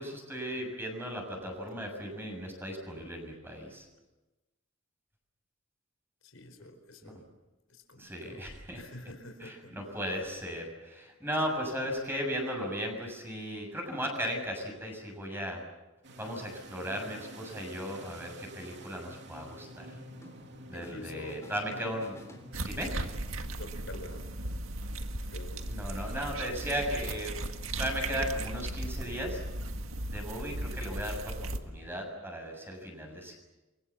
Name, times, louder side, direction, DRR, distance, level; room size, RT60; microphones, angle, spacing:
voice 1, 0.0-3.9 7.0-7.1 8.0-8.8 9.4-15.6 16.2-20.0 20.7-22.2 22.6-23.0 25.7-27.4 27.8-29.4 30.1-33.4, equal, 10° right, 2 dB, 7.0 m, -36 dB
voice 2, 6.2-7.3 7.7-8.4 8.7-9.8 20.7-21.4 23.6-24.3 25.2-25.8, left 1 dB, 85° left, 7 dB, 4.6 m, -47 dB
sound 1, 16.0-24.6, right 1 dB, 55° right, 3.0 m, -50 dB
sound 2, 20.2-21.0 21.3-23.0, left 1 dB, 15° left, 3.5 m, -54 dB
sound 3, 22.5-31.6, right 1 dB, 85° right, 1.9 m, -36 dB
29.0 x 24.0 x 7.3 m, 1.1 s
head